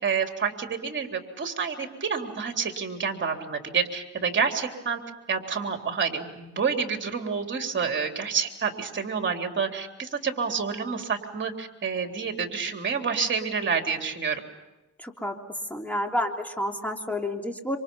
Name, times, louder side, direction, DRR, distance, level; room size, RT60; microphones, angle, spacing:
voice 1, 0.0-5.0 5.3-14.4, right 6 dB, 40° right, 4 dB, 3.7 m, -28 dB
voice 2, 15.0-17.8, left 1 dB, 5° left, 2 dB, 3.2 m, -30 dB
28.0 x 26.5 x 5.6 m, 1.0 s
cardioid pair, 90°, 30 cm